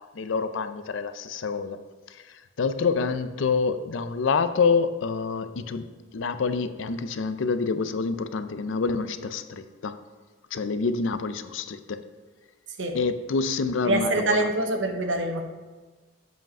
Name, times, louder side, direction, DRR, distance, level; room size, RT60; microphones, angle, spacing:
voice 1, 0.0-1.8 2.1-5.9 6.1-10.0 10.5-12.0 12.9-14.5, left 4 dB, 80° left, 11 dB, 0.5 m, -27 dB
voice 2, 13.9-15.4, right 2 dB, 75° right, 5 dB, 0.9 m, -25 dB
7.8 x 5.0 x 5.3 m, 1.3 s
head